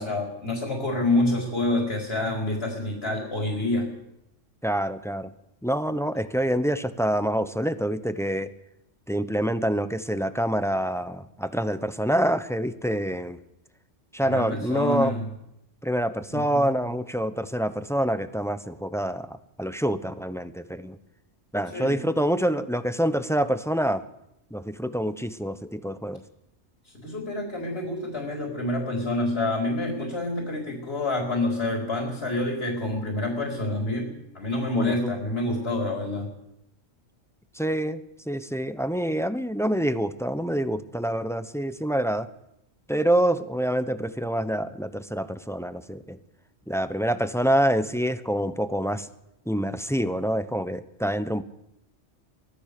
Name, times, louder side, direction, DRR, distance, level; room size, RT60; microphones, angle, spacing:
voice 1, 0.0-3.9 14.2-15.3 16.3-16.6 21.7-22.0 26.8-36.3, left 2 dB, 55° left, 1 dB, 4.5 m, -27 dB
voice 2, 4.6-5.3 5.6-8.5 9.1-13.4 14.1-15.1 15.8-21.0 21.5-24.0 24.5-26.2 34.7-34.9 37.5-42.3 42.9-46.2 46.7-49.1 49.5-51.4, equal, 5° left, 12 dB, 0.8 m, -26 dB
24.0 x 16.0 x 6.8 m, 0.82 s
omnidirectional pair, 1.3 m